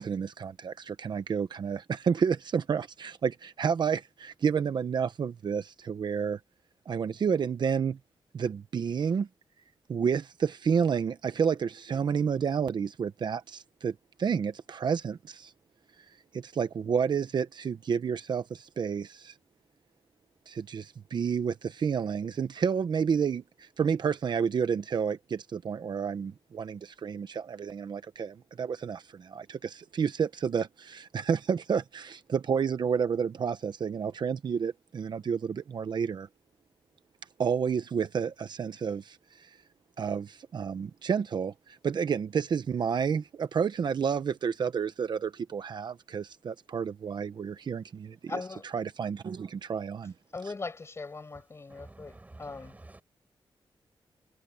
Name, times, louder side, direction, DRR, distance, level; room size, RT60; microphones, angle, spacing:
voice 1, 0.0-6.4 6.9-8.0 8.3-9.3 9.9-15.5 16.3-19.3 20.5-36.3 37.4-39.6 40.0-48.2 48.7-50.1, right 6 dB, 55° right, 0.8 m, -30 dB
voice 2, 48.3-48.7 50.3-52.8, left 3 dB, 30° left, 7.3 m, -39 dB
voice 3, 51.3-53.0, right 2 dB, 15° right, 8.0 m, -51 dB
wide cardioid pair, 155°, 9 cm